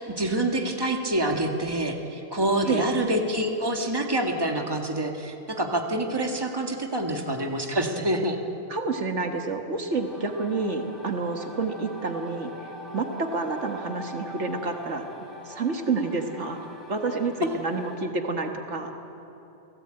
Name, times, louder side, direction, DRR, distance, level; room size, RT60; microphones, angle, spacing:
voice 1, 0.0-8.4, right 1 dB, 20° right, 3 dB, 1.9 m, -26 dB
voice 2, 8.7-12.5 12.9-15.1 15.5-16.6 16.9-18.9, right 3 dB, 70° right, 4 dB, 1.9 m, -29 dB
sound 1, 9.9-18.0, left 1 dB, ahead, 6.2 m, -43 dB
29.0 x 17.5 x 9.0 m, 3.0 s
omnidirectional pair, 1.3 m